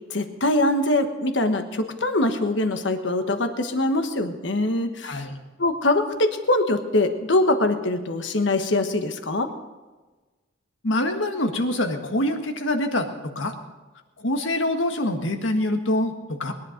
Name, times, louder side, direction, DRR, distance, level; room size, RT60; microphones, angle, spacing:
voice 1, 0.1-5.3 5.6-9.5, left 2 dB, 70° left, 7 dB, 1.3 m, -23 dB
voice 2, 5.0-5.4 10.8-13.5 14.2-16.5, left 1 dB, 85° left, 5 dB, 1.7 m, -25 dB
21.0 x 11.0 x 5.2 m, 1.2 s
head